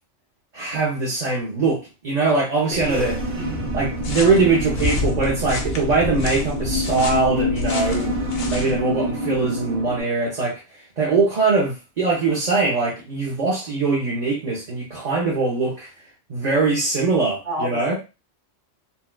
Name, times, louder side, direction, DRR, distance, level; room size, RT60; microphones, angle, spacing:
voice 1, 0.5-3.2 3.7-8.2 8.4-15.9 16.3-18.0, right 3 dB, 40° right, -4 dB, 0.7 m, -22 dB
Thunder, 2.7-8.8, left 2 dB, 80° left, 1.5 m, -29 dB
voice 2, 2.7-3.1 3.4-3.7 17.4-18.0, right 1 dB, 55° right, -5 dB, 1.2 m, -30 dB
sound 1, 2.8-10.0, equal, 85° right, 1.4 m, -28 dB
sound 2, 4.0-8.8, left 3 dB, 60° left, 0.9 m, -34 dB
4.3 x 2.3 x 2.2 m, 0.29 s
omnidirectional pair, 1.2 m